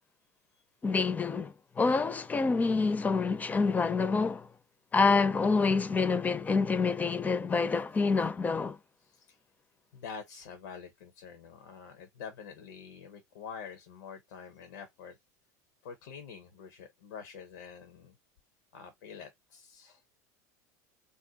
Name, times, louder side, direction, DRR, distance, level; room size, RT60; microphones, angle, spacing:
voice 1, 0.8-4.5 4.9-8.8, left 4 dB, 20° left, 0.4 m, -27 dB
voice 2, 9.0-9.4 9.9-15.2 15.8-18.1 18.7-20.0, left 6 dB, 80° left, 0.6 m, -46 dB
2.5 x 2.1 x 3.8 m
hypercardioid pair, 95°, 9 cm